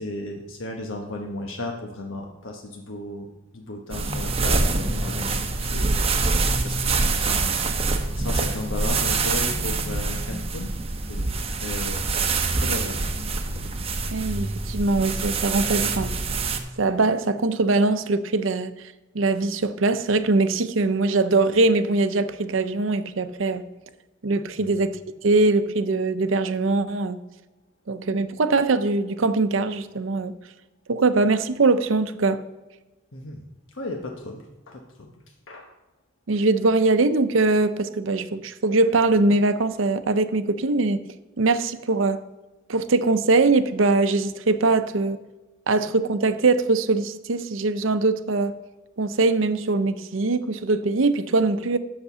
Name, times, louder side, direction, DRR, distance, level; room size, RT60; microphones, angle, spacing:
voice 1, 0.0-3.3 3.5-10.7 11.1-12.1 12.5-13.1 24.6-24.8 33.1-33.4 33.7-35.7, left 2 dB, 85° left, 1.1 m, -35 dB
sound 1, 3.9-16.6, right 3 dB, 30° right, 0.9 m, -25 dB
voice 2, 14.1-16.1 16.8-18.7 19.1-23.6 24.2-27.2 27.9-30.3 30.9-32.4 36.3-41.0 41.4-42.2 42.7-45.2 45.7-48.6 49.0-51.8, right 3 dB, 80° right, 0.7 m, -22 dB
8.3 x 6.7 x 6.7 m
head